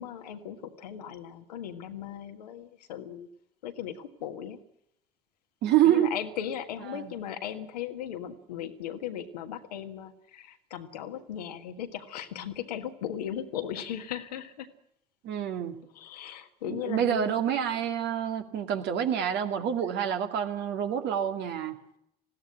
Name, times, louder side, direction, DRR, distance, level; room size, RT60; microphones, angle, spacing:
voice 1, 0.0-3.3 3.6-4.6 5.8-14.7 15.9-17.4, left 9 dB, 80° left, 6 dB, 1.7 m, -37 dB
voice 2, 5.6-6.1 6.9-7.1 15.2-15.8 16.7-21.8, right 10 dB, 60° right, 5 dB, 2.3 m, -27 dB
20.0 x 16.0 x 9.9 m, 0.77 s
figure-of-eight pair, 50°, 20 cm